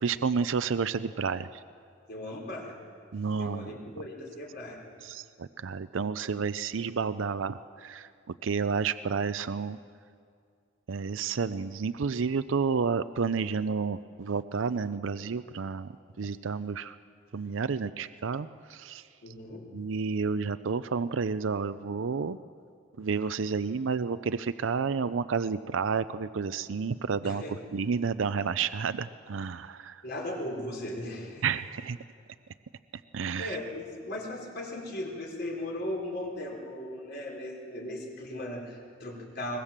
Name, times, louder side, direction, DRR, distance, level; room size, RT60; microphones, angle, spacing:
voice 1, 0.0-1.6 3.1-3.7 5.0-8.1 8.4-9.8 10.9-15.9 16.2-17.0 17.3-19.0 19.7-22.4 23.0-27.4 27.7-30.0 31.4-32.0 33.1-33.6, right 5 dB, 85° right, 13 dB, 0.5 m, -30 dB
voice 2, 2.1-2.8 3.3-4.8 19.2-19.6 27.2-27.6 30.0-31.5 33.4-39.6, left 1 dB, 55° left, -1 dB, 4.5 m, -37 dB
22.0 x 21.0 x 7.4 m, 2.2 s
head